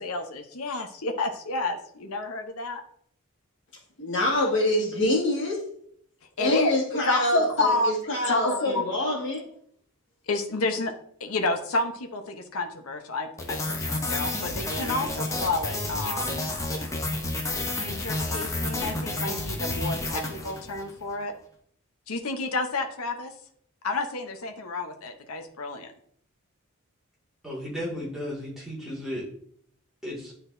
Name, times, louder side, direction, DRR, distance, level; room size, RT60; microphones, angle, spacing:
voice 1, 0.0-2.8 6.4-6.8 7.1-7.9 8.3-8.8 10.3-10.9 11.2-16.5 17.8-21.3 22.1-23.3 23.8-25.9, left 2 dB, 85° left, 6 dB, 0.8 m, -30 dB
voice 2, 4.0-5.6 6.4-9.4, left 1 dB, 55° left, -1 dB, 1.9 m, -25 dB
sound 1, 13.4-20.9, left 2 dB, 15° left, 0.7 m, -30 dB
voice 3, 27.4-29.3 30.0-30.3, equal, ahead, -6 dB, 2.0 m, -34 dB
10.0 x 3.9 x 2.6 m, 0.64 s
head